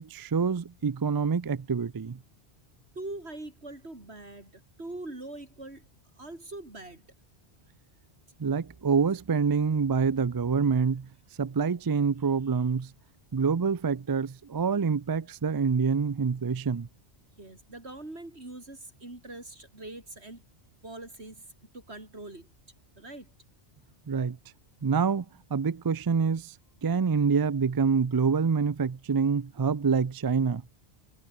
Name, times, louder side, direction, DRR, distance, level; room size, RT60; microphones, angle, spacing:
voice 1, 0.0-2.2 8.4-11.1 11.4-12.9 13.3-16.9 24.1-24.4 24.8-25.3 25.5-26.5 26.8-30.6, right 5 dB, 40° right, 0.3 m, -26 dB
voice 2, 3.0-5.9 6.2-7.0 17.4-20.4 20.8-21.4 21.7-22.5 23.0-23.3, right 2 dB, 70° right, 5.2 m, -42 dB
omnidirectional pair, 1.1 m